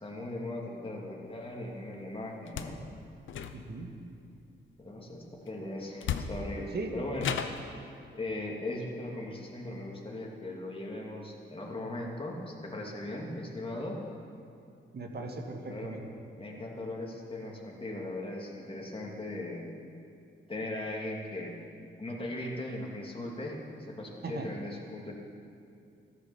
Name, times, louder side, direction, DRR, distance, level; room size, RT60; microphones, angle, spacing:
voice 1, 0.0-2.8 4.8-7.3 8.1-14.1 15.6-16.0 16.3-19.7 20.5-21.5 22.0-25.1, left 1 dB, 25° left, -2 dB, 2.8 m, -38 dB
sound 1, 2.5-2.8 3.3-3.9 5.5-5.6 6.0-6.6 7.2-7.7, left 7 dB, 80° left, 0.8 m, -34 dB
voice 2, 3.5-3.9 6.7-7.0 14.9-16.1 24.2-24.5, right 3 dB, 55° right, 3 dB, 1.9 m, -38 dB
14.0 x 10.5 x 7.1 m, 2.5 s
cardioid pair, 65°, 20 cm